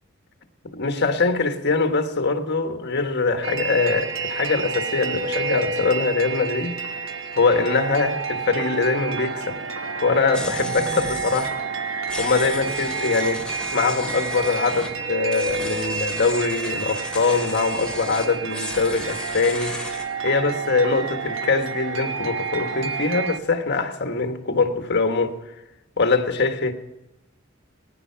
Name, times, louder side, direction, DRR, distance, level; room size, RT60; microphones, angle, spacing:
voice 1, 0.6-6.8 7.3-9.6 10.0-11.6 12.2-13.5 13.7-19.8 20.2-25.4 26.0-26.7, left 4 dB, 60° left, 1.4 m, -23 dB
sound 1, 3.4-23.4, right 4 dB, 70° right, 1.1 m, -29 dB
sound 2, 10.3-11.5 12.1-14.9 15.2-20.1, left 2 dB, 5° left, 2.3 m, -35 dB
20.5 x 10.5 x 5.8 m
head